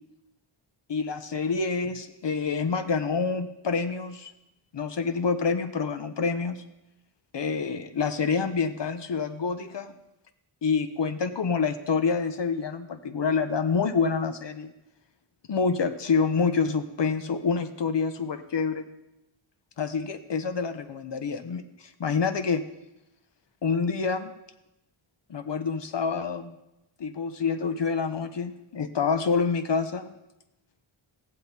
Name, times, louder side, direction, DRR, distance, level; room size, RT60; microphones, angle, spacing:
voice 1, 0.9-4.3 4.7-6.6 7.3-9.9 10.6-14.7 15.5-18.9 19.8-22.6 23.6-24.3 25.3-26.6 27.0-30.1, left 5 dB, 55° left, 10 dB, 0.9 m, -27 dB
15.0 x 10.0 x 4.2 m, 0.90 s
wide cardioid pair, 105°, 50 cm